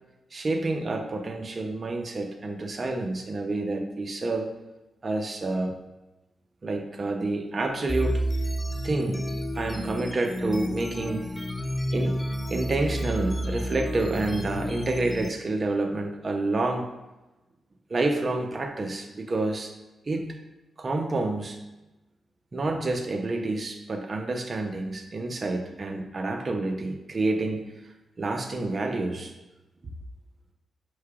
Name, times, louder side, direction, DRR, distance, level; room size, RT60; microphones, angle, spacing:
voice 1, 0.3-4.5 5.0-5.8 6.6-8.2 8.8-9.2 9.5-11.2 11.9-12.2 12.5-16.9 17.9-19.7 20.1-20.3 20.8-21.6 22.5-27.6 28.2-29.3 29.8-29.9, right 2 dB, 40° right, 4 dB, 0.5 m, -28 dB
sound 1, 7.9-15.3, equal, 15° left, 0.3 m, -30 dB
5.7 x 3.1 x 2.3 m, 1.0 s
cardioid pair, 80°, 0 cm